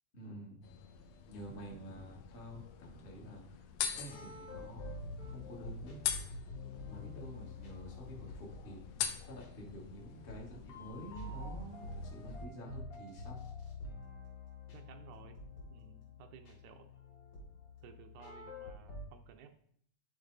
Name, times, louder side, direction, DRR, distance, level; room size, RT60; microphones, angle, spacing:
voice 1, 0.1-0.6 1.3-6.0 6.3-6.5 6.8-13.4, right 1 dB, 30° left, -3 dB, 1.0 m, -49 dB
sound 1, 0.6-12.5, left 8 dB, 80° left, 1.6 m, -44 dB
sound 2, 3.9-19.1, left 2 dB, 60° left, 3.1 m, -48 dB
voice 2, 14.7-15.4 15.7-16.9 17.8-19.6, right 8 dB, 80° right, 7 dB, 1.9 m, -56 dB
10.0 x 4.4 x 4.0 m, 0.65 s
omnidirectional pair, 3.6 m